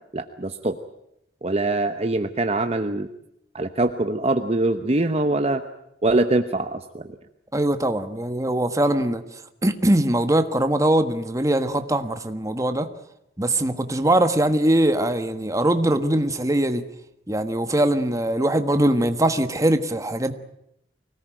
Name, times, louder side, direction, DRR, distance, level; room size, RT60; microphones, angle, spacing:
voice 1, 0.1-0.8 1.4-3.1 3.5-5.6 6.0-7.0, right 2 dB, 35° right, 8 dB, 1.0 m, -23 dB
voice 2, 7.5-9.2 9.6-12.9 13.4-16.8 17.3-20.3, right 1 dB, 15° right, 9 dB, 1.4 m, -21 dB
24.5 x 18.0 x 9.1 m, 0.79 s
head